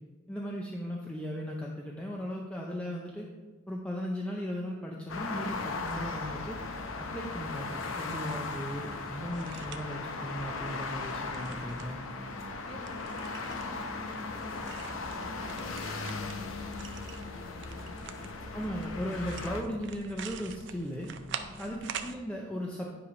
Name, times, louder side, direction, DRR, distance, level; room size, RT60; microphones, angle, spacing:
voice 1, 0.3-3.3 3.7-6.6 7.0-12.0 18.5-21.1 21.6-22.9, equal, 5° left, -2 dB, 0.5 m, -37 dB
sound 1, 5.1-19.6, left 3 dB, 75° left, 0.7 m, -38 dB
sound 2, 9.3-22.2, right 7 dB, 60° right, 0.5 m, -46 dB
voice 2, 11.9-18.2 21.3-21.8, left 1 dB, 30° left, -3 dB, 1.6 m, -49 dB
9.7 x 3.3 x 5.0 m, 1.4 s
head